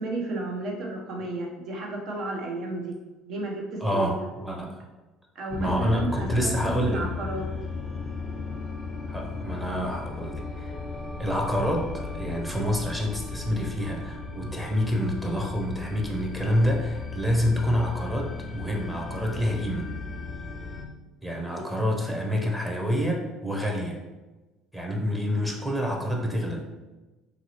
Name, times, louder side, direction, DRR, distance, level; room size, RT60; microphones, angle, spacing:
voice 1, 0.0-3.0 3.3-4.1 5.3-7.5 21.5-21.6, right 2 dB, 60° right, 0 dB, 0.8 m, -33 dB
voice 2, 3.8-4.8 5.6-7.0 9.1-10.7 11.2-19.9 21.2-24.0 24.7-26.6, equal, 5° right, 0 dB, 0.7 m, -27 dB
sound 1, 5.5-20.9, left 4 dB, 30° left, 0.5 m, -36 dB
2.9 x 2.7 x 2.9 m, 1.1 s
hypercardioid pair, 75°, 0 cm